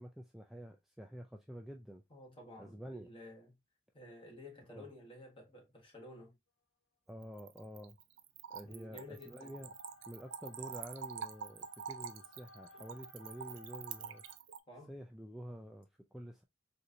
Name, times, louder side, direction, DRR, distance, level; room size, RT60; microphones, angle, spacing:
voice 1, 0.0-2.0 2.6-3.1 4.7-4.9 7.1-8.0 8.5-9.7 10.1-14.2 14.9-16.4, equal, ahead, 0.3 m, -49 dB
voice 2, 2.1-3.6 3.9-6.4 8.7-9.6 14.7-14.9, left 1 dB, 30° left, 1.3 m, -53 dB
Splash splatter / Trickle dribble, 7.2-14.6, right 7 dB, 75° right, 0.4 m, -46 dB
sound 1, 8.6-14.4, left 2 dB, 80° left, 1.2 m, -60 dB
4.2 x 2.6 x 2.5 m
head